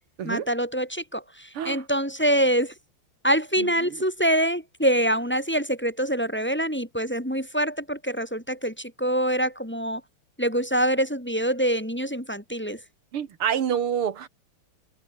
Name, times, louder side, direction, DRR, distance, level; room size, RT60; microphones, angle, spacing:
voice 1, 0.2-2.7 3.2-10.0 10.4-12.8, right 1 dB, 5° left, 2.2 m, -25 dB
voice 2, 13.1-14.3, right 8 dB, 85° right, 2.6 m, -27 dB
omnidirectional pair, 2.4 m